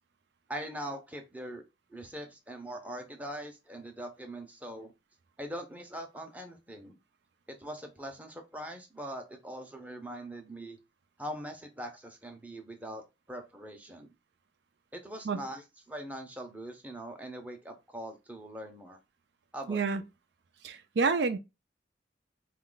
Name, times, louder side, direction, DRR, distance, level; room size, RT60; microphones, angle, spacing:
voice 1, 0.5-1.6 1.9-4.9 5.4-7.0 7.5-10.8 11.2-14.1 14.9-19.0 19.5-19.8, right 1 dB, 10° right, 0.6 m, -42 dB
voice 2, 19.7-20.0 20.6-21.4, right 4 dB, 65° right, 0.4 m, -28 dB
4.1 x 2.4 x 3.8 m
head